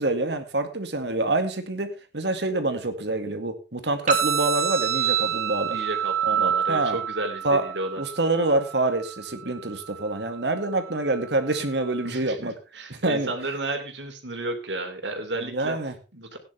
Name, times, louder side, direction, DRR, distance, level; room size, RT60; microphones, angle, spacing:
voice 1, 0.0-5.8 6.2-7.0 7.4-7.6 8.0-12.5 13.0-13.3 15.5-15.9, right 2 dB, 70° right, 7 dB, 2.2 m, -26 dB
sound 1, 4.1-12.1, right 8 dB, 45° right, 3.2 m, -29 dB
voice 2, 5.7-8.0 12.0-15.8 16.1-16.4, right 2 dB, 85° right, 5 dB, 3.2 m, -32 dB
17.0 x 10.0 x 3.5 m, 0.30 s
head